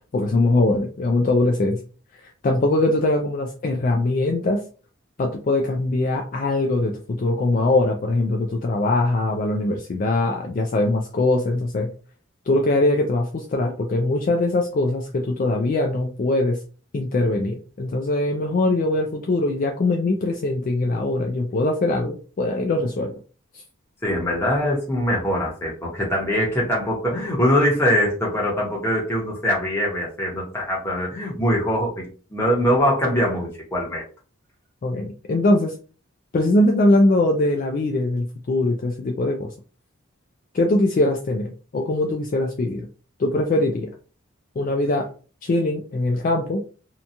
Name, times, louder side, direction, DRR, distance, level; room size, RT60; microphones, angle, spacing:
voice 1, 0.1-1.8 2.2-4.7 5.2-11.9 12.5-16.6 16.9-23.1 34.8-35.8 36.3-39.5 40.5-42.9 43.2-43.9 44.6-45.1 45.4-46.7, left 2 dB, 40° left, 2 dB, 0.3 m, -22 dB
voice 2, 24.0-34.0, equal, 10° left, -4 dB, 0.9 m, -22 dB
2.8 x 2.2 x 2.5 m, 0.38 s
head